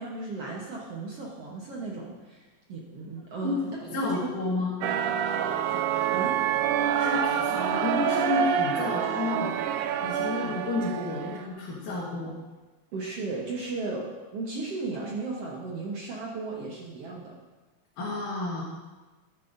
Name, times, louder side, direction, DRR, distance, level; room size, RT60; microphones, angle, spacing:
voice 1, 0.0-4.3 5.3-6.4 10.4-10.5 12.9-17.3, right 3 dB, 60° right, -3 dB, 1.7 m, -36 dB
voice 2, 3.4-4.7 7.0-9.5 10.0-12.3 18.0-18.6, left 3 dB, 70° left, -6 dB, 3.0 m, -31 dB
sound 1, 4.8-11.5, right 9 dB, 80° right, 2.0 m, -27 dB
13.5 x 11.5 x 2.7 m, 1.2 s
omnidirectional pair, 3.9 m